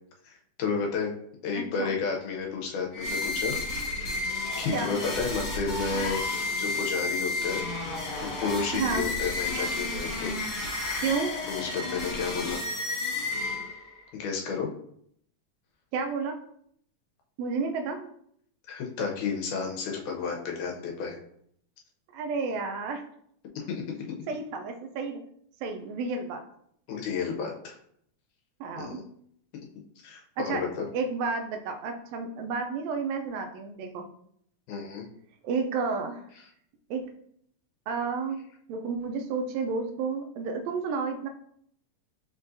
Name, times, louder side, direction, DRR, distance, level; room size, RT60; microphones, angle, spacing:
voice 1, 0.2-1.1 1.4-3.6 4.2-6.2 6.6-7.6 8.2-10.4 11.5-12.9 14.1-14.7 18.7-21.2 23.6-23.8 26.9-27.8 28.8-29.0 29.8-30.9 34.7-35.1, left 5 dB, 90° left, 1 dB, 2.3 m, -32 dB
voice 2, 1.5-1.9 4.7-4.9 8.7-9.0 11.0-11.3 15.9-16.4 17.4-18.1 22.1-23.0 24.3-25.2 25.6-26.4 28.6-29.0 30.4-30.6 30.9-34.0 35.4-36.2 36.9-37.1 37.9-38.4 38.7-41.3, right 4 dB, 80° right, 4 dB, 1.6 m, -31 dB
sound 1, 2.9-14.0, left 2 dB, 55° left, 2.1 m, -32 dB
5.1 x 3.8 x 2.6 m, 0.68 s
omnidirectional pair, 3.5 m